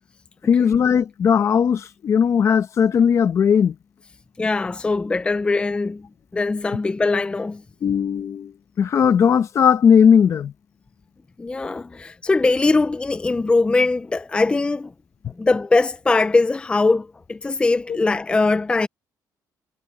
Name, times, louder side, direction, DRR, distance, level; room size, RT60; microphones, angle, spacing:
voice 1, 0.4-3.8 7.8-10.5 15.2-15.3 17.9-18.0, left 7 dB, 45° left, 1.0 m, -17 dB
voice 2, 4.4-6.1 6.3-7.6 11.4-14.9 15.4-18.9, left 3 dB, 15° left, 0.5 m, -21 dB
cardioid pair, 140°, 7 cm